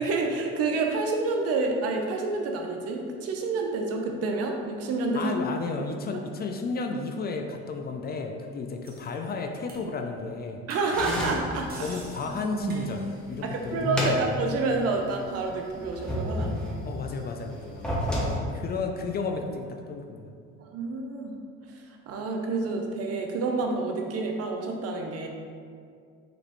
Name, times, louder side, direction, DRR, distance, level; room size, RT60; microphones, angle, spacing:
voice 1, 0.0-5.3 5.8-5.9 10.7-11.9 13.4-16.6 20.6-21.4 21.7-25.3, right 3 dB, 55° right, 2 dB, 0.7 m, -29 dB
voice 2, 5.1-10.6 11.8-14.3 16.8-20.3, left 4 dB, 35° left, 3 dB, 0.4 m, -33 dB
sound 1, 8.8-9.1 9.7-9.9 10.2-10.3 10.7-13.3 13.6-14.2, right 1 dB, 30° right, 1.0 m, -45 dB
sound 2, 10.9-13.0 13.4-14.8 15.1-15.2 15.8-17.0 17.6-18.3, left 1 dB, 5° left, 0.9 m, -31 dB
5.0 x 3.0 x 3.0 m, 2.2 s
supercardioid pair, 95°, 29 cm